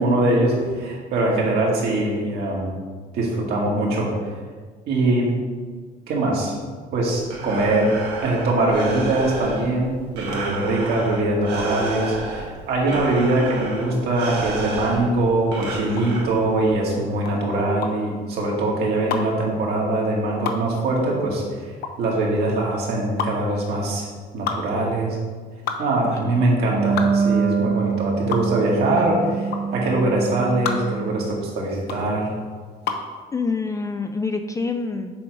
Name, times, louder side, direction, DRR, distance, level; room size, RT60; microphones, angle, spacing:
voice 1, 0.0-2.7 3.1-4.1 4.9-5.3 6.1-6.5 6.9-7.9 8.2-24.1 24.3-25.2 25.8-32.3, right 2 dB, 70° right, -3 dB, 1.8 m, -22 dB
Breathing, 7.0-16.7, right 3 dB, 90° right, 1.4 m, -32 dB
sound 1, 15.9-33.1, left 6 dB, 70° left, 0.7 m, -32 dB
Wind instrument woodwind instrument, 26.6-31.7, right 5 dB, 30° right, 0.6 m, -25 dB
voice 2, 33.3-35.2, left 4 dB, 20° left, 6 dB, 0.3 m, -27 dB
6.8 x 3.9 x 4.7 m, 1.5 s
cardioid pair, 110°, 17 cm